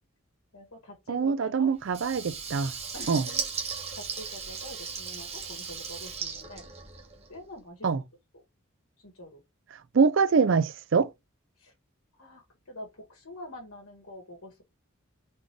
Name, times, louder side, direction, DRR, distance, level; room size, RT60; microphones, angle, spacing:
voice 1, 0.5-1.7 2.9-3.5 3.9-6.6 7.3-7.9 9.0-9.4 11.6-11.7 12.2-14.6, left 1 dB, 80° left, 1.6 m, -45 dB
voice 2, 1.1-2.7 3.1-3.2 7.8-8.0 9.9-11.1, right 5 dB, 60° right, 0.4 m, -24 dB
Water tap faucet / Liquid, 1.9-7.4, right 6 dB, 30° right, 1.1 m, -37 dB
4.2 x 3.4 x 3.0 m
head